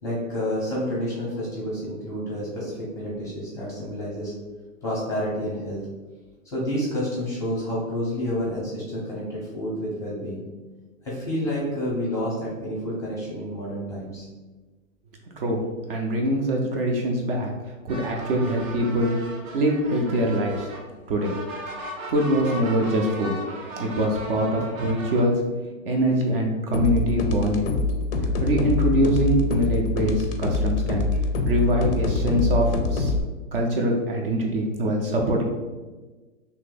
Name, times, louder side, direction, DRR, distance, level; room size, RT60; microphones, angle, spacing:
voice 1, 0.0-4.3 4.8-5.8 6.4-10.4 11.0-14.3, equal, 10° left, -6 dB, 0.6 m, -29 dB
voice 2, 15.9-17.5 17.8-19.1 19.5-20.7 21.1-21.3 22.1-23.3 23.8-25.3 25.9-27.7 28.4-31.1 31.4-33.1 33.5-35.4, right 1 dB, 45° right, 0 dB, 0.5 m, -23 dB
sound 1, 17.9-25.2, right 1 dB, 90° right, 1.0 m, -37 dB
sound 2, 26.7-33.2, left 3 dB, 45° left, 0.4 m, -25 dB
2.8 x 2.7 x 3.8 m, 1.3 s
hypercardioid pair, 150°, 40 cm